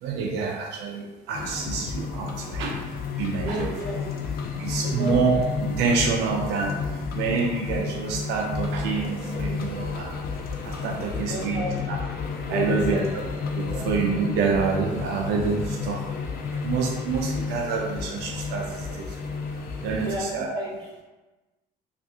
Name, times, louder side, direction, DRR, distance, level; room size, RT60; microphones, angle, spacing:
voice 1, 0.0-2.8 3.2-3.8 4.6-6.8 7.1-10.1 10.6-12.0 12.5-13.0 13.5-16.0 16.6-19.2 19.8-20.5, right 5 dB, 85° right, 0 dB, 0.4 m, -27 dB
sound 1, 1.3-20.2, left 5 dB, 65° left, 0.5 m, -31 dB
voice 2, 3.3-4.1 4.8-5.1 11.1-11.8 12.4-13.1 13.6-13.9 20.0-20.9, equal, 25° right, -6 dB, 1.4 m, -32 dB
3.4 x 2.4 x 2.7 m, 1.2 s
cardioid pair, 110°, 17 cm